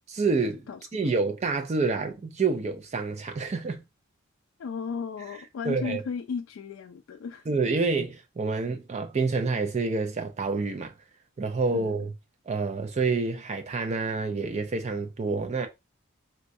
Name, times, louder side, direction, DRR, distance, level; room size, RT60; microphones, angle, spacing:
voice 1, 0.1-0.7 0.9-3.8 5.7-6.0 7.5-10.9 11.4-12.1 12.5-15.7, right 4 dB, 30° right, 0.3 m, -28 dB
voice 2, 4.6-7.5 11.7-11.9, left 5 dB, 65° left, 0.3 m, -35 dB
3.8 x 2.3 x 2.6 m
head